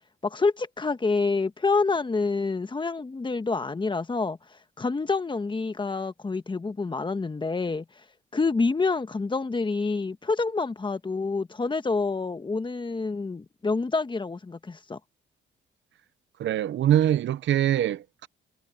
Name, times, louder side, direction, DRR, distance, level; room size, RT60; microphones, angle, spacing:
voice 1, 0.2-4.4 4.8-7.8 8.3-15.0, left 4 dB, 25° left, 1.4 m, -27 dB
voice 2, 16.4-18.3, right 11 dB, 70° right, 0.9 m, -23 dB
cardioid pair, 90°, 20 cm